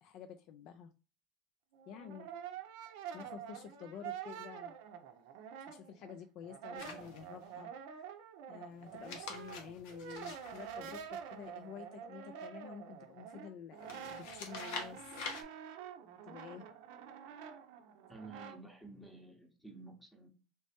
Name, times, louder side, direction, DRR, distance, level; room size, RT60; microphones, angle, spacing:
voice 1, 0.0-0.9 1.9-2.3 3.1-4.7 5.7-8.1 8.5-15.0 16.2-16.7, left 8 dB, 60° left, 0.3 m, -50 dB
Brass instrument, 1.7-6.1 6.4-18.6, right 8 dB, 85° right, 0.5 m, -47 dB
sound 1, 6.8-7.5 8.9-11.5 13.8-15.4, left 4 dB, 80° left, 0.8 m, -47 dB
voice 2, 18.1-20.3, right 3 dB, ahead, 0.7 m, -52 dB
3.2 x 3.1 x 2.8 m
cardioid pair, 125°, 0 cm